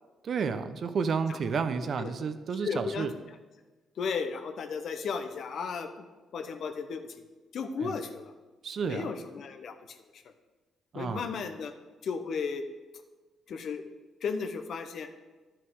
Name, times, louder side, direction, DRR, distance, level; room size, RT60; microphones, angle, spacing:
voice 1, 0.2-3.1 7.8-8.0 8.6-9.1 10.9-11.3, right 5 dB, 55° right, 11 dB, 0.6 m, -31 dB
voice 2, 2.6-3.1 4.0-6.0 6.3-7.1 7.5-8.3 8.9-9.7 10.1-10.2 10.9-11.7 12.0-12.6 13.5-13.8 14.2-15.1, left 5 dB, 65° left, 7 dB, 0.9 m, -34 dB
11.0 x 5.9 x 4.7 m, 1.2 s
cardioid pair, 90°, 0 cm